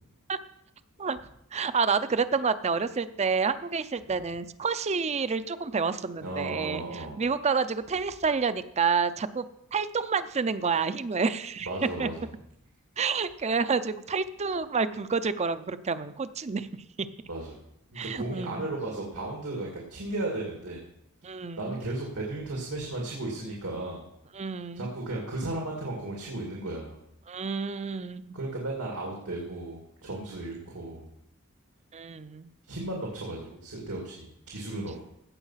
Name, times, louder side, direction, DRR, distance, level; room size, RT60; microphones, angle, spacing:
voice 1, 1.5-6.8 7.2-9.5 9.7-11.7 12.0-12.1 13.0-16.7 17.0-17.1 18.0-18.7 21.2-21.8 24.3-24.9 27.3-28.4 31.9-32.5, right 5 dB, 30° right, 13 dB, 0.5 m, -29 dB
voice 2, 6.2-7.2 11.6-12.3 17.3-17.6 17.9-20.8 21.5-24.0 24.8-27.0 28.3-31.1 32.6-35.0, right 2 dB, 90° right, -2 dB, 2.3 m, -35 dB
16.0 x 5.5 x 5.7 m, 0.78 s
head